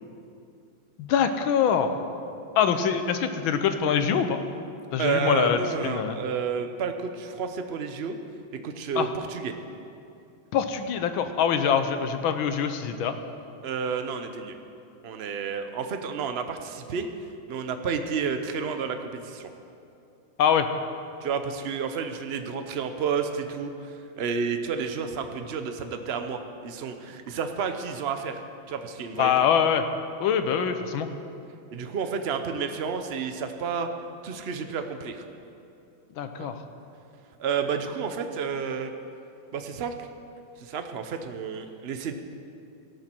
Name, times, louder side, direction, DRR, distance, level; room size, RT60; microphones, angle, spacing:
voice 1, 1.0-2.0 2.5-4.4 4.9-6.2 8.9-9.1 10.5-13.2 20.4-20.7 29.2-29.8 30.2-31.1 36.2-36.6, left 7 dB, 85° left, 8 dB, 1.6 m, -24 dB
voice 2, 5.0-8.2 8.6-9.5 13.6-14.6 15.0-17.1 17.5-19.5 21.2-28.4 28.7-29.5 31.7-33.9 34.2-35.2 36.4-36.5 37.4-38.9 39.5-40.1 40.6-42.1, right 6 dB, 85° right, 7 dB, 0.5 m, -31 dB
17.5 x 13.0 x 4.4 m, 2.6 s
omnidirectional pair, 2.2 m